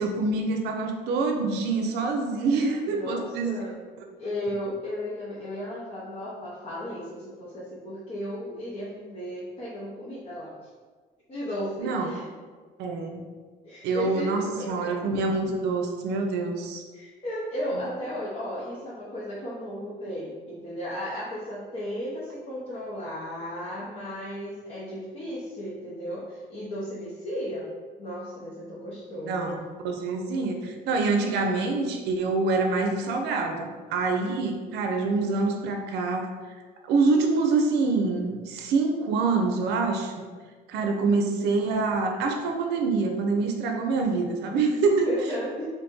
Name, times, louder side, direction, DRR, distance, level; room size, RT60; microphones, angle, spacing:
voice 1, 0.0-3.5 4.0-4.1 11.8-12.2 12.8-13.3 13.8-16.8 29.3-36.3 36.8-40.1 40.7-45.1, right 3 dB, 80° right, 3 dB, 0.5 m, -26 dB
voice 2, 2.9-3.7 4.2-10.5 11.3-12.2 13.6-14.8 16.9-27.7 28.0-29.5 44.5-44.6 45.0-45.7, equal, 35° left, -8 dB, 0.7 m, -35 dB
2.6 x 2.6 x 3.6 m, 1.5 s
cardioid pair, 110°, 17 cm